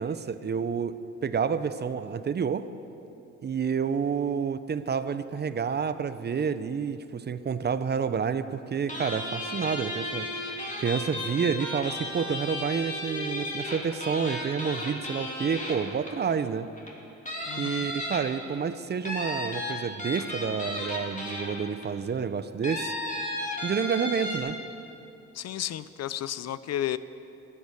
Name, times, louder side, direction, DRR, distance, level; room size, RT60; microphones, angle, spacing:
voice 1, 0.0-2.7 3.4-10.5 10.8-16.7 17.6-22.9 23.6-24.6, right 6 dB, 35° right, 12 dB, 0.6 m, -29 dB
sound 1, 8.9-16.3 16.8-16.9 17.3-18.5 19.0-21.8 22.6-24.4, left 1 dB, 25° left, 3.1 m, -34 dB
voice 2, 17.4-17.9 25.3-27.0, left 12 dB, 60° left, 15 dB, 0.5 m, -32 dB
15.0 x 11.0 x 7.0 m, 2.8 s
cardioid pair, 90°, 30 cm